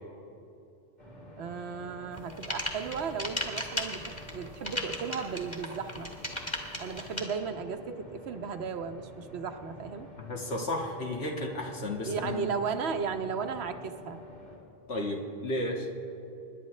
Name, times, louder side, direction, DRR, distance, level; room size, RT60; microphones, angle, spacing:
sound 1, 1.0-14.6, left 1 dB, 60° left, 3.2 m, -49 dB
voice 1, 1.4-6.1 6.8-10.1 12.1-14.2, right 5 dB, 80° right, 7 dB, 1.1 m, -35 dB
sound 2, 2.1-7.2, left 1 dB, 25° left, 2.0 m, -35 dB
voice 2, 10.2-12.5 14.9-15.9, left 1 dB, 80° left, 0 dB, 2.0 m, -33 dB
26.5 x 11.0 x 3.2 m, 2.8 s
omnidirectional pair, 1.1 m